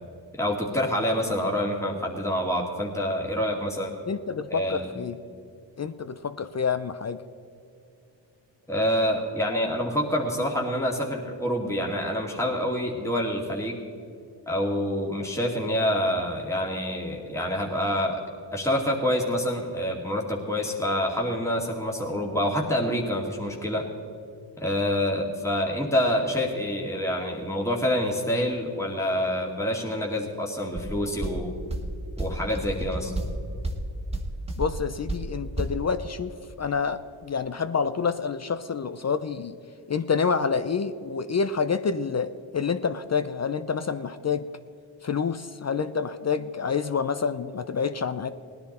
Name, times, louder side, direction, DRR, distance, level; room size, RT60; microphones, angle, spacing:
voice 1, 0.3-4.0 4.5-4.9 8.7-13.8 14.5-18.2 18.5-23.9 24.6-31.5 32.2-33.1, equal, 5° left, -1 dB, 2.3 m, -27 dB
voice 2, 4.1-5.2 5.8-7.2 34.6-36.3 36.6-39.5 39.9-44.5 45.0-48.3, left 5 dB, 35° left, 11 dB, 0.6 m, -28 dB
sound 1, 30.7-35.8, right 1 dB, 10° right, 1.8 m, -32 dB
18.0 x 10.5 x 4.3 m, 2.5 s
supercardioid pair, 50°, 48 cm